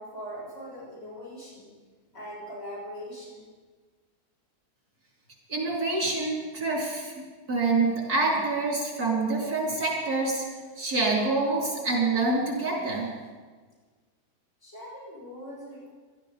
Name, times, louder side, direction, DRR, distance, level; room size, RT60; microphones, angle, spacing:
voice 1, 0.0-1.7 2.1-3.4 14.6-15.9, equal, 40° left, -7 dB, 6.6 m, -41 dB
voice 2, 5.5-7.1 7.5-10.4 10.8-13.1, right 3 dB, 80° right, -3 dB, 4.7 m, -26 dB
19.5 x 13.0 x 5.3 m, 1.4 s
omnidirectional pair, 1.6 m